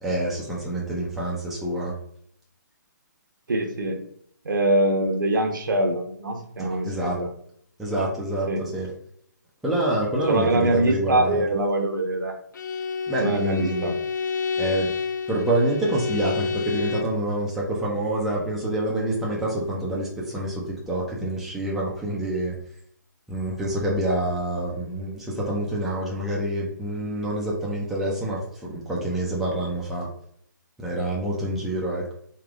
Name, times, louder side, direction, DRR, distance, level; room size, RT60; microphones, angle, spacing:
voice 1, 0.0-1.9 6.6-7.2 7.8-8.9 9.6-11.4 13.1-13.9 14.6-14.9 15.3-22.5 23.3-28.4 28.7-30.1 30.8-32.1, right 1 dB, ahead, -5 dB, 0.6 m, -27 dB
voice 2, 3.5-4.0 4.4-7.3 8.5-8.6 10.3-12.3 13.2-13.9, right 1 dB, 85° right, 3 dB, 0.9 m, -23 dB
Bowed string instrument, 12.5-17.2, left 5 dB, 70° left, 0.4 m, -29 dB
3.2 x 2.4 x 3.6 m, 0.67 s
hypercardioid pair, 155°, 10 cm